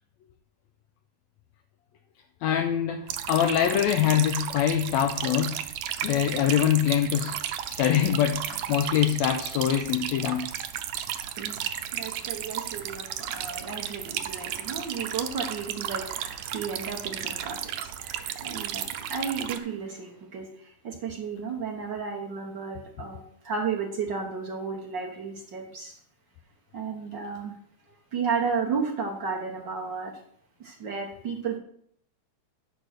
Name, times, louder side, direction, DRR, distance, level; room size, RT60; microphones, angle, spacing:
voice 1, 2.4-5.6 6.0-7.4 7.7-10.5, left 10 dB, 75° left, 1.9 m, -24 dB
sound 1, 3.1-19.6, right 11 dB, 85° right, 2.1 m, -34 dB
voice 2, 11.4-26.0 26.7-27.5 27.9-30.1 30.6-31.6, right 5 dB, 60° right, 1.2 m, -33 dB
10.5 x 4.7 x 6.4 m
omnidirectional pair, 3.4 m